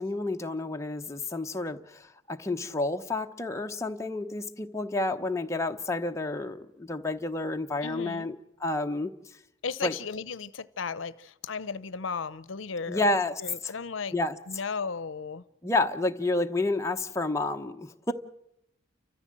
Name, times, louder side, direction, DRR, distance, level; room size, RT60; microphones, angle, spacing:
voice 1, 0.0-9.1 9.8-9.9 12.9-13.7 14.1-14.4 15.6-18.1, left 2 dB, 15° left, 0.9 m, -30 dB
voice 2, 7.8-8.3 9.6-13.0 13.4-14.1 14.5-15.4, left 5 dB, 75° left, 0.7 m, -35 dB
30.0 x 14.0 x 7.6 m
head